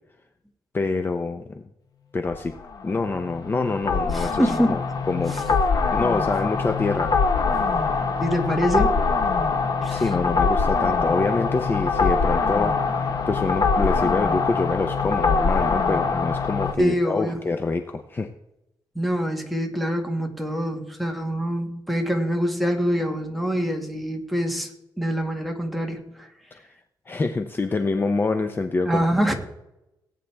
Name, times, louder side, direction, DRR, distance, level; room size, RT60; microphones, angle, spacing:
voice 1, 0.7-1.6 2.1-2.5 2.8-5.6 5.9-7.2 9.9-18.3 26.5-26.6 27.1-29.0, left 3 dB, 25° left, 7 dB, 0.7 m, -26 dB
sound 1, 2.3-16.7, left 4 dB, 55° left, 1.3 m, -23 dB
voice 2, 4.1-4.7 5.3-5.4 8.2-9.1 9.8-10.0 16.8-17.4 19.0-24.7 25.0-26.3 28.9-29.3, equal, ahead, 3 dB, 1.9 m, -25 dB
19.0 x 9.2 x 3.5 m, 0.88 s
wide cardioid pair, 135°, 8 cm